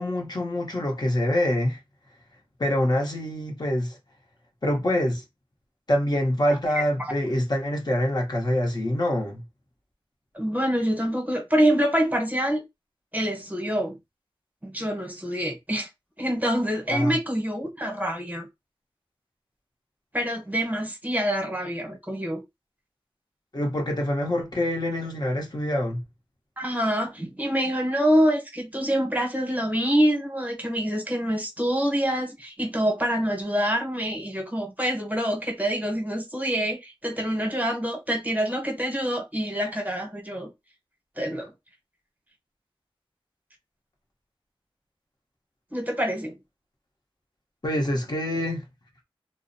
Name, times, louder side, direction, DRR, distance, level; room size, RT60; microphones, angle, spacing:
voice 1, 0.0-1.8 2.6-4.0 4.6-5.2 5.9-9.4 16.9-17.2 23.5-26.0 47.6-48.6, left 1 dB, 45° left, 0.8 m, -25 dB
voice 2, 6.5-7.1 10.3-12.6 13.1-14.0 14.6-15.9 16.2-18.5 20.1-22.4 26.6-40.5 41.2-41.5 45.7-46.3, equal, 15° right, 0.9 m, -26 dB
2.5 x 2.0 x 2.6 m
wide cardioid pair, 50°, 10 cm